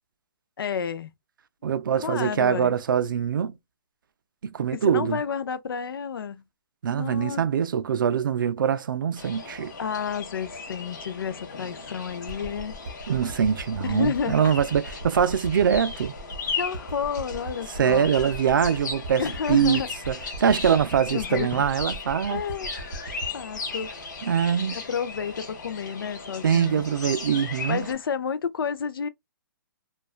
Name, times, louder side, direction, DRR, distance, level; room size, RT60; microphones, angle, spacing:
voice 1, 0.6-1.1 1.9-2.7 4.7-6.4 6.9-7.4 9.8-12.7 13.8-14.5 16.6-18.1 19.2-19.9 21.1-21.6 22.3-22.7 23.1-23.9 24.7-26.8 27.7-29.1, left 7 dB, 85° left, 0.4 m, -30 dB
voice 2, 1.6-3.5 4.4-5.2 6.8-9.7 13.1-16.1 17.7-22.4 24.3-24.8 26.4-27.9, right 8 dB, 65° right, 0.4 m, -23 dB
sound 1, 9.2-27.9, left 4 dB, 55° left, 0.8 m, -37 dB
sound 2, 12.3-25.0 25.6-25.7, right 2 dB, 20° right, 0.7 m, -39 dB
2.3 x 2.3 x 2.3 m
hypercardioid pair, 175°, 12 cm